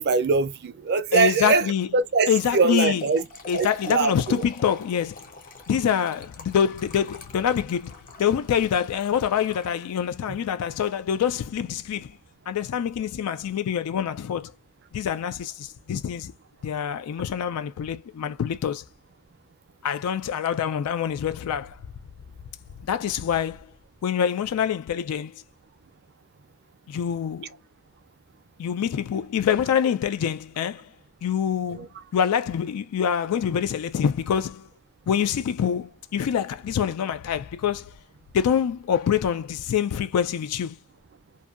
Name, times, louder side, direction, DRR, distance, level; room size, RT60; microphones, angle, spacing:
voice 1, 0.0-1.7 1.9-3.2 3.5-4.4 10.3-10.4 31.7-31.9, right 4 dB, 50° right, 0.5 m, -23 dB
voice 2, 1.1-1.9 2.3-3.0 3.5-5.2 5.7-12.1 12.5-14.5 14.9-16.3 16.6-18.8 19.8-21.8 22.8-23.6 24.0-25.3 26.9-27.5 28.6-30.9 31.2-31.9 32.1-34.7 35.1-37.9 38.3-40.8, left 8 dB, 85° left, 0.3 m, -25 dB
Trickle dribble / Fill (with liquid), 3.0-10.2, left 3 dB, 40° left, 0.7 m, -44 dB
2.7 x 2.2 x 2.4 m
head